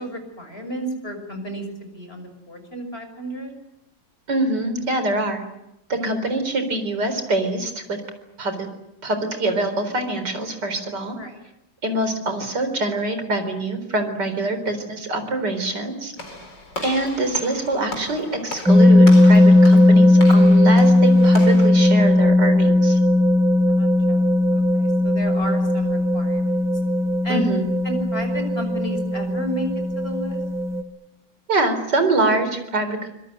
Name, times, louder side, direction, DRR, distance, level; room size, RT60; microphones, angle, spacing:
voice 1, 0.0-3.5 6.0-6.1 11.1-11.4 20.4-20.5 23.7-26.5 27.2-27.5 27.8-30.4, right 1 dB, 30° left, 6 dB, 6.5 m, -32 dB
voice 2, 4.3-5.4 5.9-8.0 8.4-8.7 9.0-11.2 11.8-16.1 16.8-23.0 27.3-27.7 31.5-33.1, right 2 dB, 65° right, 8 dB, 4.8 m, -24 dB
Walk footsteps / Slam, 16.2-21.7, left 2 dB, 70° left, 5.0 m, -36 dB
sound 1, 18.7-30.8, left 1 dB, ahead, 1.6 m, -16 dB
25.5 x 22.5 x 9.3 m, 0.87 s
omnidirectional pair, 2.0 m